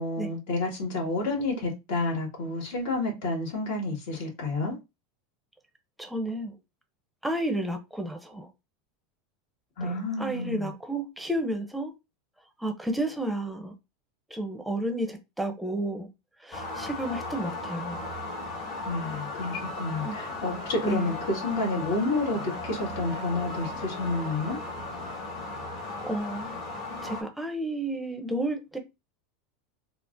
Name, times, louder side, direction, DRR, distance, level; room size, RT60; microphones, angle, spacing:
voice 1, 0.0-4.8 9.8-10.7 18.8-24.6, left 2 dB, 75° left, 1.8 m, -30 dB
voice 2, 6.0-6.5 7.2-8.5 9.8-9.9 10.2-11.9 12.6-13.7 14.3-16.1 16.4-18.0 20.0-20.2 20.8-21.0 26.0-26.5 27.0-28.8, right 1 dB, 5° right, 0.6 m, -31 dB
sound 1, 16.5-27.2, left 2 dB, 50° left, 1.5 m, -36 dB
3.7 x 2.0 x 2.5 m
supercardioid pair, 110°, 0 cm